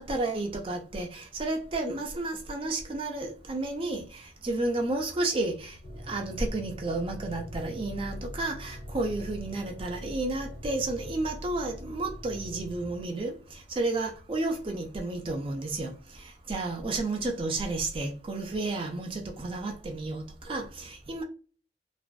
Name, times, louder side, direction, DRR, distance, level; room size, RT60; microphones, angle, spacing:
voice 1, 0.0-5.8 6.1-21.2, right 2 dB, 30° right, 0.4 m, -32 dB
sound 1, 5.8-13.0, equal, 40° left, 0.6 m, -42 dB
2.4 x 2.2 x 2.3 m
head